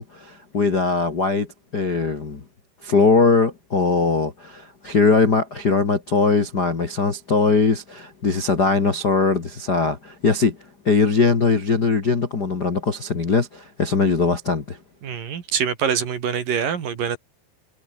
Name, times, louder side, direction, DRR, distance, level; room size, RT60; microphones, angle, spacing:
voice 1, 0.0-1.5 1.7-2.4 2.8-10.6 10.8-14.8, left 4 dB, 35° left, 1.6 m, -20 dB
voice 2, 15.0-17.2, right 7 dB, 55° right, 3.8 m, -24 dB
omnidirectional pair, 5.2 m